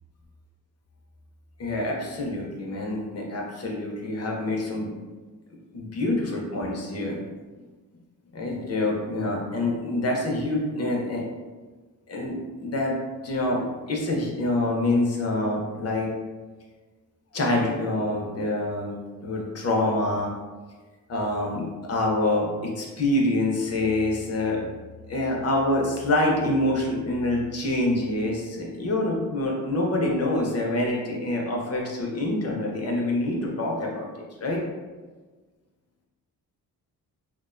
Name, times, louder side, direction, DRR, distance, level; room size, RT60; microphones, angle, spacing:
voice 1, 1.6-4.9 5.7-7.2 8.3-11.2 12.1-13.0 13.2-16.1 17.3-20.3 21.1-24.7 25.1-34.6, left 1 dB, 45° left, -1 dB, 0.6 m, -26 dB
2.4 x 2.1 x 2.4 m, 1.3 s
cardioid pair, 95°, 35 cm